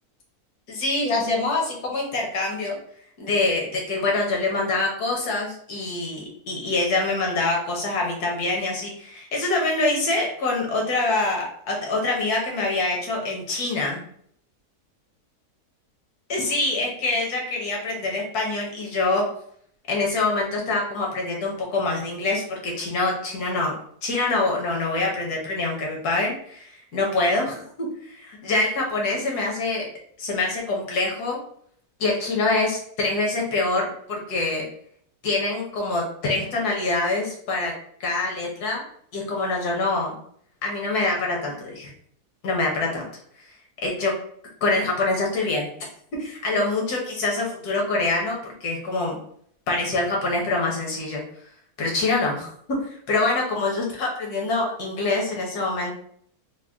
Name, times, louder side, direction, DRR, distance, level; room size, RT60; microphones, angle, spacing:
voice 1, 0.7-2.8 3.2-14.0 16.3-19.2 19.9-23.8 24.0-28.1 28.5-29.9 30.2-31.4 32.0-34.6 35.2-37.7 38.0-38.8 39.1-40.2 40.6-41.9 42.4-43.1 43.8-44.1 44.6-45.7 46.2-49.2 49.7-51.2 51.8-56.0, left 2 dB, 75° left, -1 dB, 1.6 m, -25 dB
4.0 x 2.2 x 3.5 m, 0.64 s
omnidirectional pair, 1.7 m